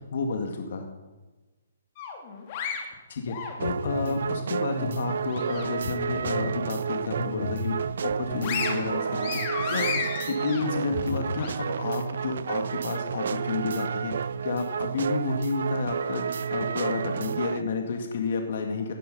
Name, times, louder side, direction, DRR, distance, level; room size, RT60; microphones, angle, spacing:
voice 1, 0.1-0.9 3.1-18.9, left 4 dB, 60° left, 4 dB, 2.1 m, -31 dB
sound 1, 2.0-4.0 4.4-5.9 6.3-6.4 6.9-7.7 8.1-11.5, left 5 dB, 35° left, 2.8 m, -34 dB
sound 2, 3.6-17.6, right 6 dB, 65° right, 0.4 m, -31 dB
sound 3, 8.0-11.0, right 3 dB, 90° right, 6.3 m, -41 dB
17.0 x 11.5 x 5.5 m, 1.2 s
hypercardioid pair, 160°, 0 cm